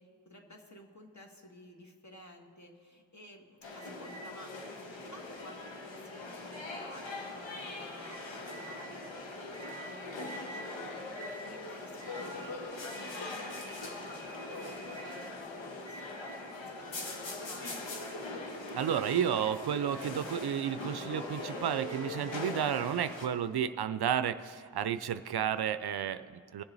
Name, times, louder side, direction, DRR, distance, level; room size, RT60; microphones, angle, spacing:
voice 1, 0.0-9.1 9.5-12.6 12.9-17.9, left 1 dB, 40° left, 1 dB, 1.9 m, -53 dB
sound 1, 3.6-23.3, left 2 dB, 85° left, 1.3 m, -41 dB
voice 2, 18.7-26.6, right 9 dB, 60° right, 13 dB, 0.5 m, -32 dB
21.0 x 7.0 x 4.0 m, 2.2 s
cardioid pair, 60°, 44 cm